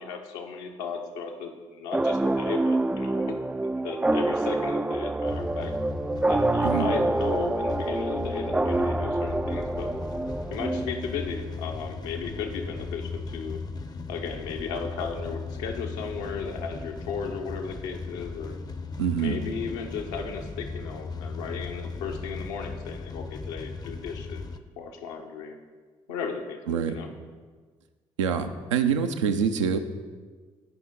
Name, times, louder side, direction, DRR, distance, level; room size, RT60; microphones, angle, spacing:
voice 1, 0.0-3.4 3.8-5.7 6.3-9.9 10.5-13.6 14.1-18.6 19.2-24.5 24.8-25.6 26.1-27.1, left 5 dB, 70° left, 3 dB, 1.0 m, -35 dB
sound 1, 1.9-11.4, right 2 dB, 10° right, 0.3 m, -27 dB
sound 2, 5.3-24.6, left 4 dB, 25° left, 0.7 m, -37 dB
voice 2, 19.0-19.4 26.7-27.0 28.2-29.8, right 7 dB, 80° right, 7 dB, 0.5 m, -25 dB
16.5 x 5.8 x 3.7 m, 1.5 s
figure-of-eight pair, 40°, 16 cm